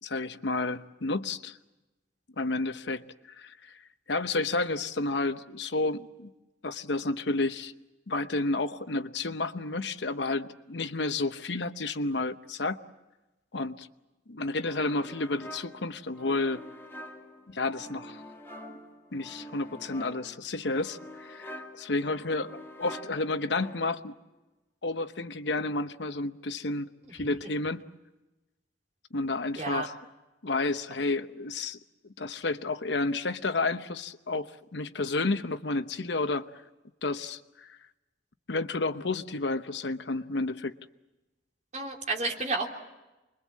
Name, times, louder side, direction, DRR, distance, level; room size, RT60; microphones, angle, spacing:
voice 1, 0.0-1.6 2.4-3.0 3.4-3.8 4.1-6.3 6.6-7.7 8.1-12.8 13.5-13.9 14.3-16.6 17.5-18.2 18.7-18.8 19.1-24.1 24.8-27.8 29.1-29.9 30.4-31.8 32.0-36.5 37.0-37.8 38.5-40.7, left 3 dB, 70° left, 1.0 m, -31 dB
sound 1, 14.6-24.1, left 1 dB, 15° left, 2.4 m, -46 dB
voice 2, 29.6-29.9 41.7-42.7, right 3 dB, 40° right, 3.3 m, -31 dB
29.0 x 22.5 x 7.5 m
head